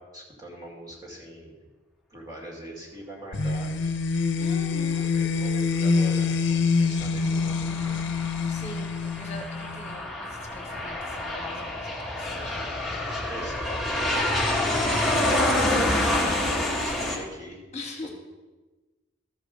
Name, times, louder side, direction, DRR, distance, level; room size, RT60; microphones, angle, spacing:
voice 1, 0.0-1.6 2.1-3.7 5.1-8.0 12.2-12.8 13.2-17.6 18.0-18.1, right 1 dB, 20° right, -2 dB, 2.3 m, -41 dB
sound 1, 3.3-10.0, left 4 dB, 65° left, 0.7 m, -26 dB
voice 2, 4.4-5.1 8.5-8.9 9.2-12.6 17.7-18.1, left 2 dB, 35° left, 2 dB, 1.3 m, -41 dB
Aircraft, 7.0-17.2, left 1 dB, ahead, 1.7 m, -27 dB
13.5 x 5.3 x 6.5 m, 1.2 s
head